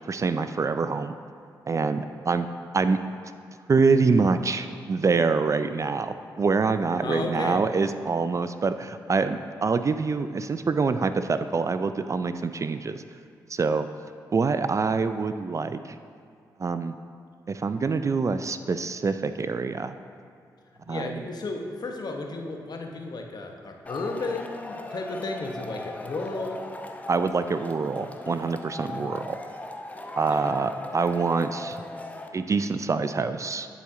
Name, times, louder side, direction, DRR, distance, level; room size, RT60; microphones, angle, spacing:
voice 1, 0.1-1.2 1.7-2.5 2.7-3.0 3.7-13.0 13.5-13.9 14.3-16.0 16.6-16.9 17.5-19.9 20.9-21.3 27.1-29.4 30.2-31.8 32.3-33.7, right 4 dB, 35° right, 10 dB, 0.3 m, -25 dB
voice 2, 7.0-7.6 20.7-26.6 28.9-29.1 30.3-30.4, left 3 dB, 55° left, 3 dB, 0.9 m, -33 dB
Male speech man speaking / Shout / Clapping, 23.9-32.3, left 2 dB, 15° left, 0.7 m, -39 dB
11.0 x 4.3 x 3.7 m, 2.3 s
supercardioid pair, 45°, 9 cm